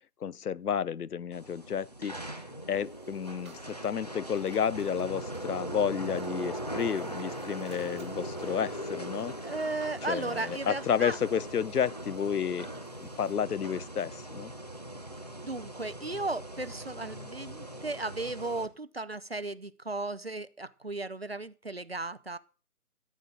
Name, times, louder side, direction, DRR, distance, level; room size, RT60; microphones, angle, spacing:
voice 1, 0.2-9.4 10.0-12.7 13.0-14.5, left 8 dB, 75° left, 0.6 m, -31 dB
sound 1, 1.3-18.7, right 1 dB, 25° left, 0.6 m, -40 dB
sound 2, 2.7-13.3, right 4 dB, 20° right, 1.3 m, -60 dB
voice 2, 9.4-11.2 15.4-22.4, right 2 dB, 40° right, 0.5 m, -35 dB
14.5 x 8.5 x 3.8 m
figure-of-eight pair, 160°, 46 cm